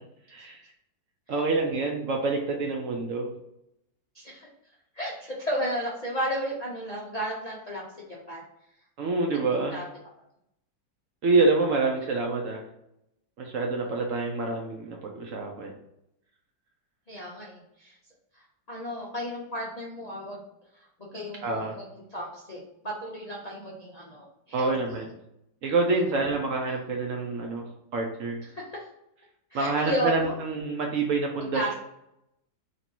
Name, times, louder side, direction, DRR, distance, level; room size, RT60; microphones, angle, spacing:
voice 1, 0.3-0.6 1.3-3.3 9.0-9.8 11.2-12.6 13.4-15.7 21.4-21.8 24.5-25.1 25.6-27.6 27.9-28.4 29.5-31.7, right 3 dB, 65° right, 1 dB, 0.8 m, -27 dB
voice 2, 4.1-4.5 4.9-8.4 9.7-9.8 13.8-14.0 17.1-17.9 18.3-20.4 20.7-20.8 21.1-21.8 22.1-24.7 28.5-28.6 29.5-30.3 31.5-31.7, equal, 70° left, -4 dB, 0.3 m, -33 dB
3.1 x 2.6 x 4.3 m, 0.82 s
omnidirectional pair, 1.8 m